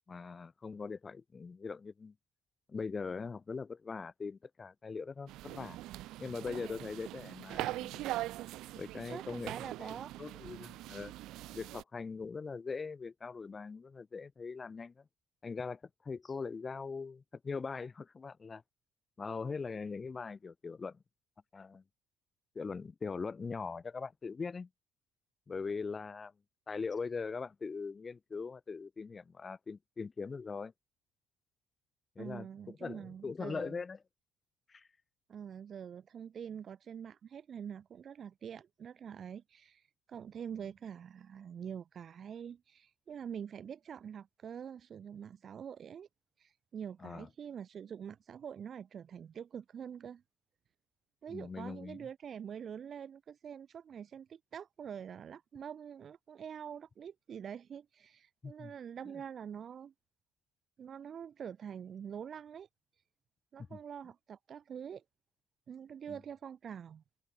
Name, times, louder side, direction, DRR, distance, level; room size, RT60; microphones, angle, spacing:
voice 1, 0.1-2.1 2.7-5.8 6.2-8.2 8.8-9.9 10.2-11.1 11.5-15.0 15.4-18.6 19.2-21.0 21.5-21.8 22.5-24.7 25.5-26.3 26.7-30.7 32.2-34.0 34.7-34.9 47.0-47.3 51.3-52.1 58.4-58.7 63.7-63.8 66.1-66.2, left 4 dB, 25° left, 4.3 m, -41 dB
sound 1, 5.3-11.8, right 16 dB, 80° right, 0.6 m, -42 dB
voice 2, 8.9-10.1 32.2-33.8 35.3-46.1 46.4-50.2 51.2-59.9 60.8-62.7 63.5-65.0 65.7-67.0, right 8 dB, 45° right, 2.4 m, -45 dB
cardioid pair, 125°, 0 cm